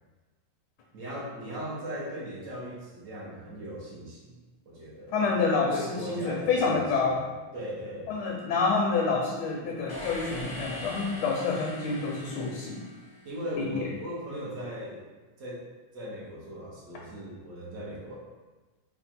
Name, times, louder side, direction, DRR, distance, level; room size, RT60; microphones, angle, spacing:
voice 1, 0.9-4.4 4.7-5.2 5.7-7.3 7.5-8.1 13.2-15.0 15.4-15.6 15.9-18.2, equal, 55° right, -5 dB, 1.1 m, -38 dB
voice 2, 5.1-7.2 8.1-12.8 13.6-13.8, left 4 dB, 75° left, -1 dB, 1.1 m, -28 dB
sound 1, 9.9-13.7, equal, 20° left, 0.7 m, -42 dB
3.6 x 2.3 x 4.1 m, 1.2 s
omnidirectional pair, 1.9 m